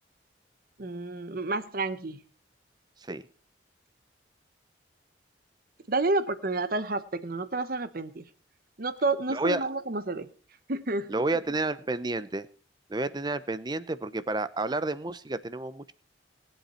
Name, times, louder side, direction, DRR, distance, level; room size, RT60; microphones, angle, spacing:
voice 1, 0.8-2.2 5.9-8.2 8.8-10.3 10.7-11.1, right 3 dB, 50° right, 1.0 m, -30 dB
voice 2, 9.3-9.6 11.1-12.5 12.9-15.9, right 2 dB, 25° right, 0.6 m, -30 dB
20.0 x 8.0 x 4.3 m
head